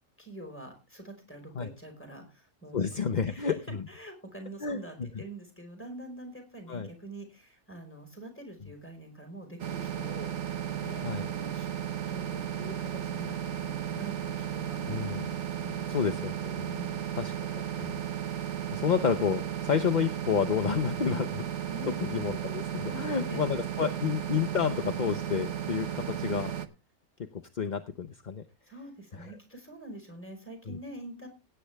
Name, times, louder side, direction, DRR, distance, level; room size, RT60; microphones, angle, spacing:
voice 1, 0.2-3.5 3.9-11.7 12.1-15.0 21.7-21.9 22.9-23.4 28.7-31.3, right 1 dB, 10° left, 4 dB, 4.9 m, -45 dB
voice 2, 2.7-3.8 4.6-5.1 6.7-6.9 11.0-11.3 14.9-15.3 15.9-16.7 17.2-17.3 17.8-18.0 18.7-21.4 22.0-26.5 27.5-28.4 30.7-30.8, left 6 dB, 40° left, 8 dB, 0.8 m, -30 dB
sound 1, 9.6-26.7, right 10 dB, 55° right, 1.2 m, -34 dB
16.5 x 9.5 x 3.4 m, 0.28 s
omnidirectional pair, 1.5 m